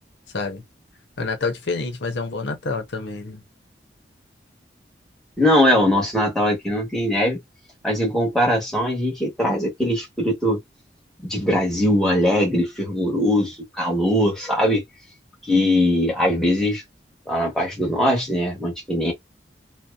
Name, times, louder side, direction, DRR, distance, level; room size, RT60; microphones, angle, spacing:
voice 1, 1.2-3.4, left 3 dB, 80° left, 0.8 m, -27 dB
voice 2, 5.4-7.4 7.8-10.6 11.2-14.8 15.4-16.8 17.3-19.1, left 1 dB, ahead, 1.1 m, -21 dB
2.6 x 2.1 x 2.3 m
head